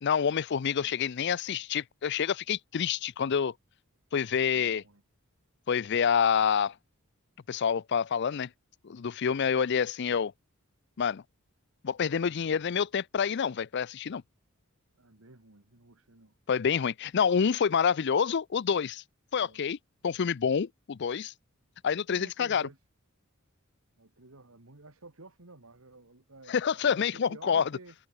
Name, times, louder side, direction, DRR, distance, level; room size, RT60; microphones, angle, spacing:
voice 1, 0.0-3.5 4.1-4.8 5.7-6.7 7.5-8.5 8.8-10.3 11.0-11.2 11.8-14.2 16.5-19.0 19.3-19.8 20.0-21.3 21.8-22.7 26.5-27.7, left 7 dB, 55° left, 0.5 m, -27 dB
voice 2, 4.2-5.0 9.7-9.8 12.2-12.6 15.0-16.4 19.4-19.7 22.1-22.8 24.0-28.0, right 2 dB, 75° right, 2.3 m, -53 dB
head